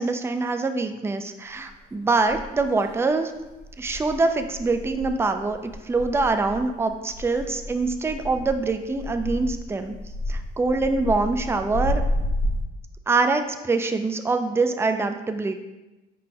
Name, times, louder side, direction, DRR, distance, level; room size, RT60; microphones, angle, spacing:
voice 1, 0.0-3.3 3.8-5.6 5.8-9.9 10.3-12.0 13.1-15.6, right 3 dB, 10° right, 7 dB, 0.4 m, -24 dB
sound 1, 1.7-1.8 2.2-2.9 3.4-12.6, left 1 dB, 55° left, 0.6 m, -31 dB
4.9 x 3.8 x 2.9 m, 1.1 s
cardioid pair, 90°, 20 cm